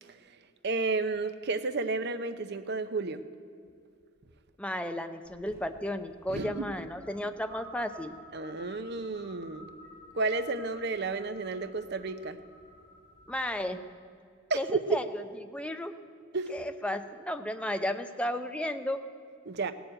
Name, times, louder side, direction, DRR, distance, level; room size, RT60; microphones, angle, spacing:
voice 1, 0.6-3.2 6.3-6.7 8.3-9.7 10.1-12.4 14.5-14.8 16.3-16.5 19.5-19.7, right 3 dB, 55° right, 11 dB, 0.7 m, -32 dB
voice 2, 4.6-8.2 13.3-13.8 14.5-15.2 15.5-15.9 16.5-19.0, left 1 dB, 5° left, 7 dB, 0.6 m, -33 dB
sound 1, 5.2-13.7, equal, 25° left, 4.8 m, -53 dB
17.5 x 7.1 x 8.8 m, 2.3 s
head